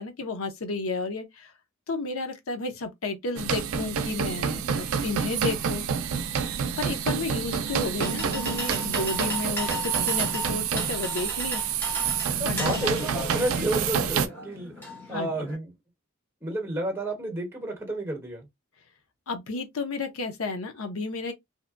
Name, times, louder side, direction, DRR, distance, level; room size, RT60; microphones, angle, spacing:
voice 1, 0.0-1.5 1.9-5.8 6.8-9.7 10.0-11.6 12.4-12.9 15.1-15.3 19.3-21.3, left 3 dB, 80° left, 0.6 m, -32 dB
sound 1, 3.4-14.3, right 7 dB, 85° right, 0.4 m, -28 dB
sound 2, 7.6-15.6, left 1 dB, 10° left, 1.0 m, -37 dB
voice 2, 12.4-14.7 15.1-15.7 16.4-18.5, right 1 dB, 10° right, 1.1 m, -31 dB
2.8 x 2.1 x 2.4 m
head